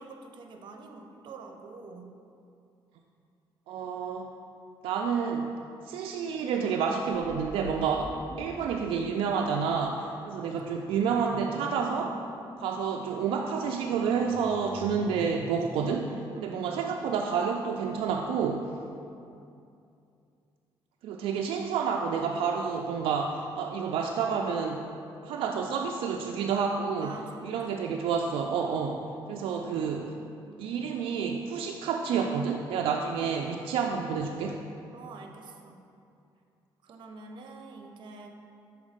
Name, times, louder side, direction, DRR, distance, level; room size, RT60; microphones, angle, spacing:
voice 1, 0.0-2.1 10.4-10.6 16.3-16.6 27.0-27.7 34.9-35.8 36.8-38.3, right 3 dB, 60° right, 4 dB, 0.7 m, -47 dB
voice 2, 3.7-4.3 4.8-5.5 5.9-12.2 12.6-18.7 21.0-24.9 25.2-27.2 27.4-30.1 30.6-34.6, right 6 dB, 85° right, 1 dB, 0.4 m, -29 dB
sound 1, 7.1-15.4, right 1 dB, 20° right, 0.8 m, -47 dB
6.2 x 4.6 x 5.0 m, 2.6 s
cardioid pair, 110°, 9 cm